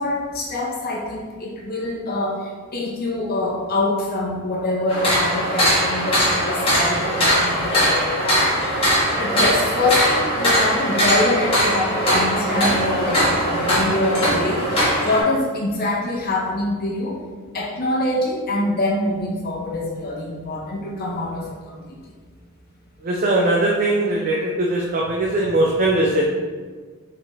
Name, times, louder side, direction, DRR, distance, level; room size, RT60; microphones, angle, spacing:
voice 1, 0.0-8.5 9.2-14.8 15.0-17.2 17.5-22.0, left 2 dB, 45° left, -2 dB, 0.8 m, -25 dB
sound 1, 4.9-15.2, equal, 25° left, 1.4 m, -20 dB
voice 2, 23.0-26.3, right 1 dB, 40° right, -2 dB, 0.5 m, -20 dB
4.6 x 3.6 x 3.1 m, 1.5 s
head